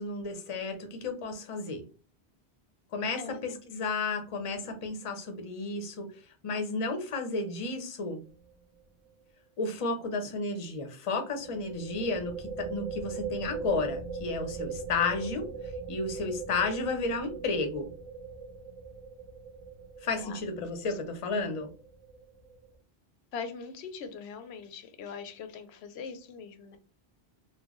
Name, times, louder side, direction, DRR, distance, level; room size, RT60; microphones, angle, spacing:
voice 1, 0.0-1.8 2.9-8.2 9.6-15.5 15.9-17.9 20.0-21.7, left 3 dB, 40° left, 6 dB, 0.6 m, -32 dB
voice 2, 3.2-3.6 20.2-20.4 23.3-26.8, left 5 dB, 85° left, 10 dB, 0.8 m, -41 dB
sound 1, 8.3-8.5 8.8-8.9 11.4-22.7, right 5 dB, 55° right, 0.4 m, -40 dB
3.8 x 2.2 x 3.0 m, 0.36 s
omnidirectional pair, 1.1 m